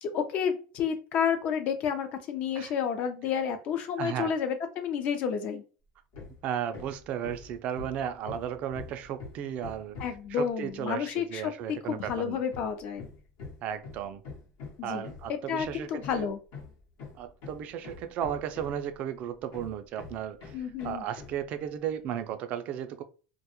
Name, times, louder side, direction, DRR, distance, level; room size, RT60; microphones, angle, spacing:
voice 1, 0.0-5.6 10.0-13.1 14.8-16.4 20.5-21.0, left 7 dB, 50° left, 0.5 m, -31 dB
voice 2, 4.0-4.3 6.4-10.0 10.3-12.4 13.6-14.2 14.8-16.3 17.2-23.0, right 9 dB, 45° right, 0.3 m, -35 dB
Hammer, 6.1-6.4 6.7-10.3 12.0-19.0 19.5-21.4, left 4 dB, 65° left, 0.9 m, -45 dB
2.2 x 2.0 x 2.8 m
supercardioid pair, 135°, 3 cm